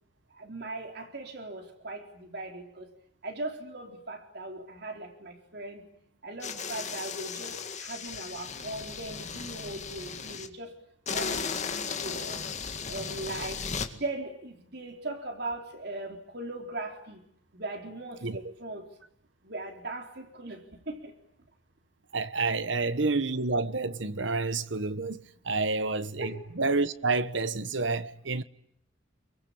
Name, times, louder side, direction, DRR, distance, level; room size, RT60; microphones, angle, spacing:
voice 1, 0.4-2.9 3.2-5.8 6.2-10.7 11.1-12.4 12.9-13.6 13.9-17.2 17.5-18.8 19.4-21.1 22.7-22.9 25.7-25.8 26.2-26.4, right 2 dB, 60° right, 3.9 m, -39 dB
sound 1, 6.4-10.5 11.1-13.9, left 5 dB, 40° left, 2.0 m, -36 dB
voice 2, 22.1-28.4, right 3 dB, 75° right, 1.3 m, -29 dB
28.0 x 23.5 x 8.8 m
head